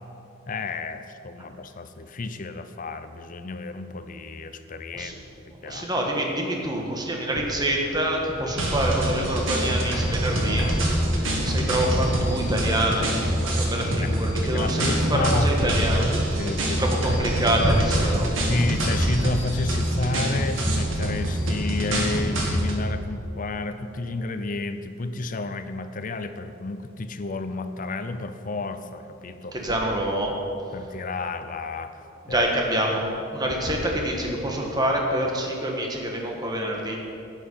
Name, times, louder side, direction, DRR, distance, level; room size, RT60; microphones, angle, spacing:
voice 1, 0.5-5.1 5.6-5.8 14.0-14.1 14.5-15.5 16.4-16.9 18.5-29.6 30.7-31.9 32.3-32.5, left 3 dB, 45° left, 10 dB, 0.6 m, -31 dB
voice 2, 5.6-10.7 11.4-16.1 16.8-18.3 29.5-30.4 32.2-33.0 33.3-37.0, right 1 dB, 20° right, 0 dB, 1.4 m, -26 dB
sound 1, 8.0-22.8, equal, 80° left, 1.7 m, -32 dB
sound 2, 8.6-22.8, right 1 dB, 85° right, 1.9 m, -26 dB
11.5 x 9.1 x 5.6 m, 2.7 s
head